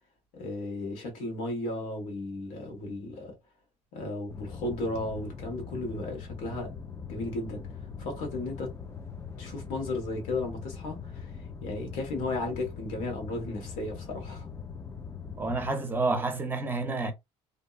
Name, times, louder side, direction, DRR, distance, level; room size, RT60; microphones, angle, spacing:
voice 1, 0.3-3.3 3.9-6.7 7.1-7.7 8.0-8.7 9.4-14.5, left 2 dB, 85° left, 1.3 m, -35 dB
sound 1, 4.3-15.7, left 6 dB, 20° left, 0.4 m, -41 dB
voice 2, 15.4-17.1, right 3 dB, 15° right, 0.6 m, -29 dB
2.6 x 2.2 x 2.4 m
cardioid pair, 115°, 12 cm